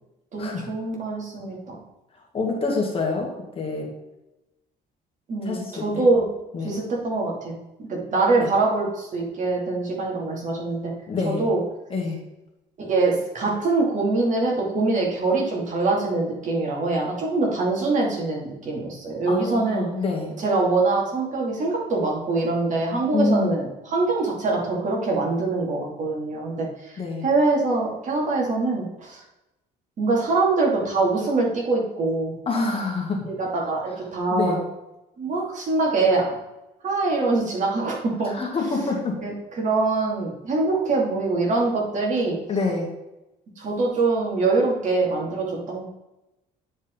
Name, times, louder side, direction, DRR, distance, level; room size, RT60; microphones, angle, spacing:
voice 1, 0.3-1.8 5.3-6.3 6.6-7.6 7.9-10.9 11.2-11.6 12.8-19.9 20.4-26.7 27.2-29.2 30.0-32.3 33.2-34.6 35.2-36.3 36.8-38.3 39.2-42.4 43.6-45.9, right 3 dB, 45° right, -2 dB, 2.7 m, -24 dB
voice 2, 2.3-3.3 3.6-3.9 5.4-6.1 6.5-6.8 8.4-8.5 11.1-11.4 11.9-12.2 19.3-20.3 23.1-23.5 27.0-27.3 32.5-33.3 34.3-34.6 38.2-39.2 42.5-42.9, left 3 dB, 35° left, 0 dB, 2.1 m, -26 dB
9.6 x 5.2 x 3.9 m, 0.94 s
cardioid pair, 110°, 17 cm